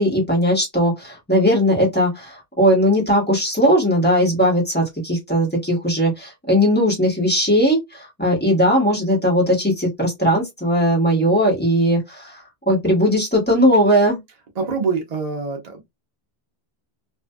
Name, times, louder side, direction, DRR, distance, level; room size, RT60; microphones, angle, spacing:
voice 1, 0.0-14.2, equal, 10° left, 1.1 m, -18 dB
voice 2, 14.6-15.8, right 4 dB, 40° right, 0.9 m, -25 dB
2.6 x 2.4 x 2.2 m
omnidirectional pair, 1.2 m